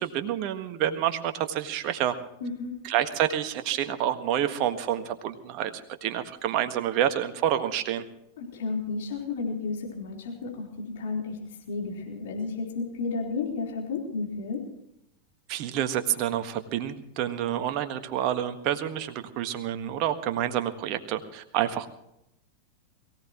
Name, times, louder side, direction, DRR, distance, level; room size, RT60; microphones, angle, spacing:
voice 1, 0.0-2.1 2.8-5.7 6.0-8.0 15.5-21.9, right 11 dB, 40° right, 8 dB, 1.6 m, -28 dB
voice 2, 2.4-2.8 8.4-14.7, left 4 dB, 55° left, 0 dB, 4.1 m, -32 dB
22.5 x 17.0 x 3.1 m, 0.79 s
figure-of-eight pair, 90°, 0 cm